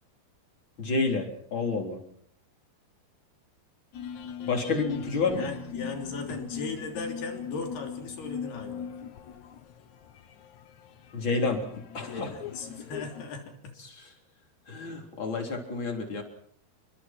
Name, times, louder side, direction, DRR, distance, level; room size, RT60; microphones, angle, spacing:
voice 1, 0.8-2.0 4.4-5.4 11.1-11.6 11.9-12.3 13.8-13.9 14.7-16.2, left 4 dB, 30° left, 3 dB, 4.0 m, -29 dB
sound 1, 3.9-13.2, left 7 dB, 60° left, 2.3 m, -40 dB
voice 2, 5.3-8.9 11.4-11.5 12.0-13.7, left 4 dB, 80° left, 3 dB, 5.2 m, -38 dB
29.0 x 24.0 x 4.6 m, 0.64 s
omnidirectional pair, 4.5 m